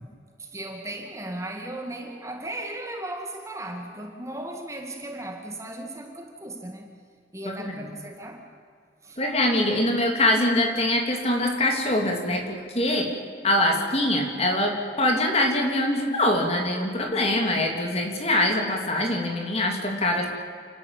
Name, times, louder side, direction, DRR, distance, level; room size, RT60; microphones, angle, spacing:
voice 1, 0.4-6.9 7.3-8.4 9.0-9.2, right 1 dB, 15° right, 2 dB, 2.1 m, -36 dB
voice 2, 7.4-7.9 9.2-13.1 13.4-20.3, left 1 dB, 35° left, 2 dB, 3.2 m, -23 dB
29.5 x 12.5 x 9.2 m, 2.3 s
head